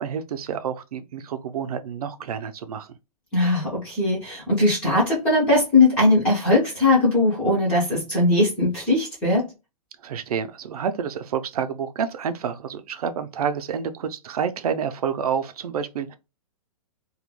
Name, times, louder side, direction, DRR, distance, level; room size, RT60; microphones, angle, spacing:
voice 1, 0.0-3.0 10.0-16.2, right 7 dB, 75° right, 0.5 m, -29 dB
voice 2, 3.3-9.5, left 2 dB, 5° left, 0.3 m, -20 dB
2.2 x 2.1 x 3.0 m
hypercardioid pair, 175°, 19 cm